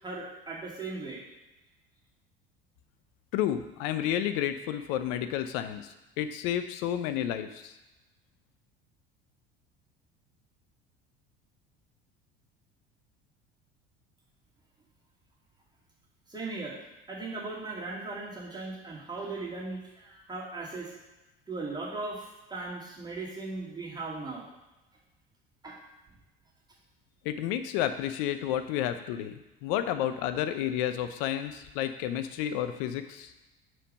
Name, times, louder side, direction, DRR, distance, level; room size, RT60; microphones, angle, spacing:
voice 1, 0.0-1.2 16.3-16.8 17.1-20.9 21.5-22.2 22.5-24.5 25.6-25.8, right 3 dB, 15° right, -5 dB, 2.3 m, -38 dB
voice 2, 3.3-7.7 27.2-33.3, left 11 dB, 60° left, 9 dB, 0.7 m, -31 dB
5.0 x 4.5 x 5.3 m, 1.1 s
hypercardioid pair, 70°, 31 cm